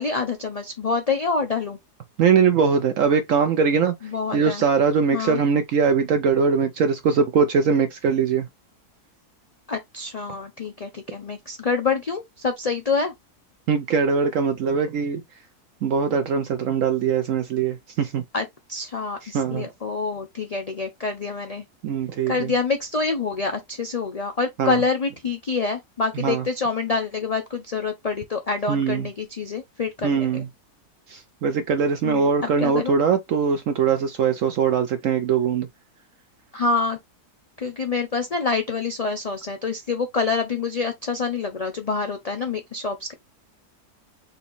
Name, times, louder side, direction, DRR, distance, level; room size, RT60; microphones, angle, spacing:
voice 1, 0.0-1.8 4.0-4.6 5.1-5.4 9.7-13.1 18.3-21.7 22.3-30.4 32.0-33.0 36.5-37.0 37.6-43.1, left 4 dB, 55° left, 0.4 m, -26 dB
voice 2, 2.2-3.9 4.3-8.5 13.7-15.2 15.8-18.2 19.2-19.6 21.8-22.5 24.6-24.8 26.2-26.4 28.7-29.1 30.0-30.5 31.1-35.7, right 6 dB, 65° right, 0.9 m, -21 dB
4.1 x 2.7 x 4.0 m
omnidirectional pair, 1.7 m